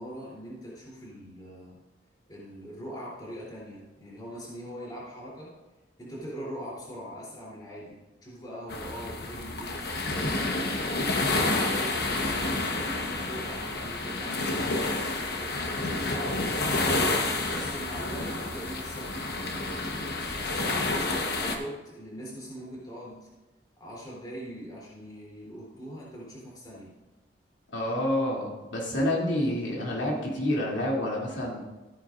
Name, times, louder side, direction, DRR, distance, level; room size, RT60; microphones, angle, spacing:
voice 1, 0.0-1.8 2.3-5.5 6.0-10.8 11.2-14.7 15.2-17.0 17.5-19.9 20.3-23.3 23.8-26.9, equal, 25° left, -5 dB, 3.3 m, -42 dB
sound 1, 8.7-21.6, left 2 dB, 60° left, 1.2 m, -29 dB
voice 2, 27.7-31.6, left 1 dB, 85° left, -3 dB, 2.8 m, -28 dB
14.5 x 9.1 x 2.5 m, 1.2 s
head